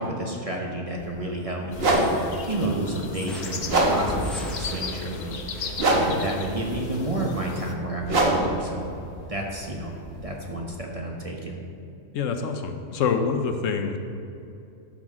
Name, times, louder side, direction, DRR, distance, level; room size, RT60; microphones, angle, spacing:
voice 1, 0.0-8.9 9.3-10.0 10.2-11.6, right 1 dB, 30° right, -1 dB, 0.8 m, -31 dB
sound 1, 1.0-1.1 1.7-10.6, right 1 dB, 50° right, 1.2 m, -26 dB
sound 2, 1.7-7.7, left 5 dB, 50° left, 0.6 m, -37 dB
sound 3, 3.3-6.9, equal, ahead, 0.5 m, -38 dB
voice 2, 12.1-14.0, left 5 dB, 75° left, 6 dB, 1.0 m, -26 dB
11.5 x 6.2 x 3.6 m, 2.7 s
omnidirectional pair, 1.4 m